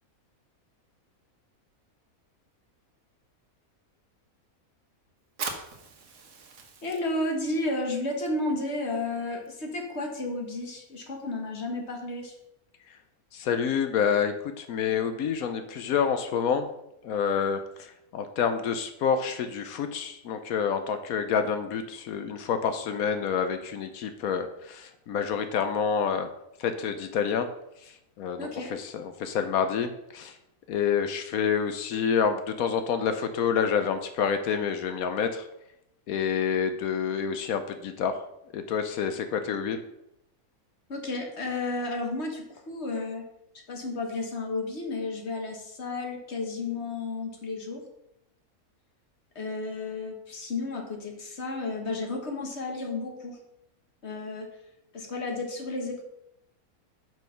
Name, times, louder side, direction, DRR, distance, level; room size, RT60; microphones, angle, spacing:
Fire, 5.3-12.5, right 5 dB, 70° right, 1.5 m, -44 dB
voice 1, 6.8-12.3 28.4-28.7 40.9-43.2 43.7-47.8 49.3-53.4 54.0-54.5 54.9-56.0, left 2 dB, 50° left, 2 dB, 1.7 m, -32 dB
voice 2, 13.3-16.7 17.0-26.3 26.6-27.5 28.2-30.4 30.7-35.5 36.1-38.2 38.5-39.8, left 7 dB, 75° left, 8 dB, 1.1 m, -28 dB
6.1 x 5.4 x 5.7 m, 0.82 s
omnidirectional pair, 1.5 m